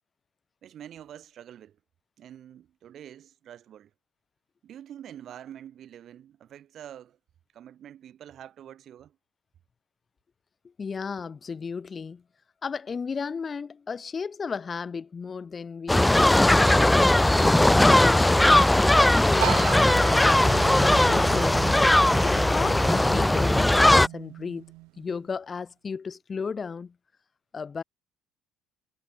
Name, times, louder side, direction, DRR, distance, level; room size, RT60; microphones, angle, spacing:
voice 1, 0.6-1.8 2.2-3.9 4.6-7.2 7.5-9.2, right 10 dB, 55° right, 6.9 m, -46 dB
voice 2, 10.8-12.2 12.6-16.5 16.9-21.6 22.2-24.6 25.0-26.9 27.5-27.8, left 5 dB, 35° left, 4.2 m, -34 dB
sound 1, 15.9-24.1, left 1 dB, 10° left, 0.4 m, -19 dB
sound 2, 19.4-25.2, right 24 dB, 80° right, 3.7 m, -37 dB
supercardioid pair, 90°, 0 cm